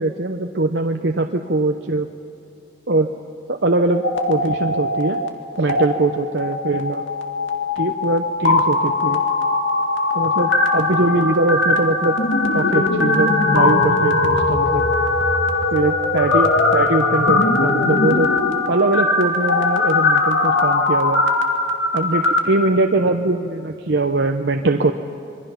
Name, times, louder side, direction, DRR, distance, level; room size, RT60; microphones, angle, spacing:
voice 1, 0.0-2.1 2.9-3.1 3.5-5.2 5.6-7.0 7.8-9.2 10.1-12.2 12.5-14.9 15.7-18.3 18.7-21.2 21.9-24.9, right 2 dB, 65° right, 4 dB, 0.8 m, -21 dB
sound 1, 3.9-5.3 5.6-5.8 6.4-22.4, left 3 dB, 90° left, 2.2 m, -19 dB
27.0 x 22.5 x 5.8 m, 2.7 s
head